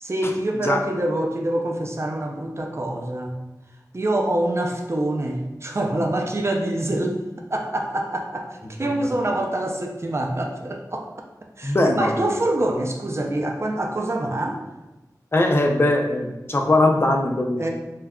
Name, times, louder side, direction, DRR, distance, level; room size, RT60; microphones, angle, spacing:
voice 1, 0.0-3.4 3.9-7.2 7.5-11.1 11.6-14.6 17.6-17.7, right 1 dB, 40° right, 2 dB, 0.5 m, -25 dB
voice 2, 11.6-12.1 15.3-17.6, left 2 dB, 35° left, 2 dB, 0.4 m, -20 dB
2.3 x 2.1 x 3.5 m, 1.0 s
wide cardioid pair, 40°, 7 cm